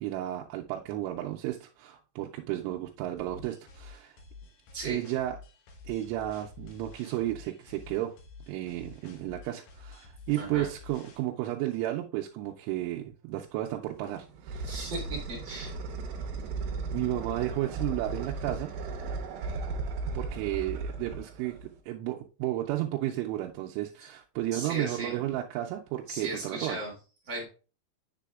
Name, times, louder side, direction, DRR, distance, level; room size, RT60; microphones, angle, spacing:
voice 1, 0.0-4.2 4.8-5.4 5.9-8.1 8.5-14.8 16.6-18.7 20.1-26.8, right 14 dB, 90° right, 3.1 m, -33 dB
sound 1, 3.2-11.2, left 4 dB, 75° left, 1.9 m, -50 dB
voice 2, 4.7-5.1 10.3-10.7 14.6-15.7 24.5-25.2 26.1-26.9 27.3-27.4, right 2 dB, 50° right, 1.4 m, -36 dB
sound 2, 13.9-21.8, right 3 dB, 70° right, 2.3 m, -36 dB
7.5 x 6.8 x 2.3 m
omnidirectional pair, 5.4 m